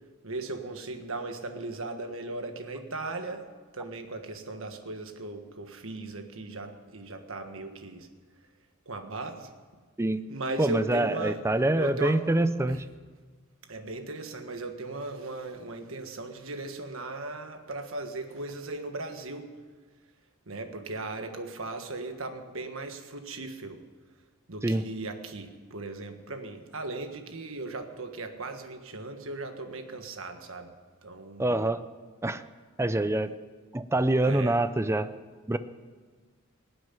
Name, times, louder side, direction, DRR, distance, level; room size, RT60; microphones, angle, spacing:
voice 1, 0.2-3.5 3.7-8.1 8.9-9.5 10.3-11.4 11.8-12.2 12.7-12.8 13.7-19.5 20.5-23.8 24.5-30.7 31.0-31.5 34.2-34.6, right 2 dB, 65° right, 6 dB, 1.5 m, -37 dB
voice 2, 10.6-12.8 24.6-24.9 31.4-31.8 32.2-32.4 32.8-33.3 33.7-35.1 35.5-35.6, right 1 dB, 10° right, 12 dB, 0.5 m, -25 dB
19.0 x 7.8 x 9.8 m, 1.5 s
head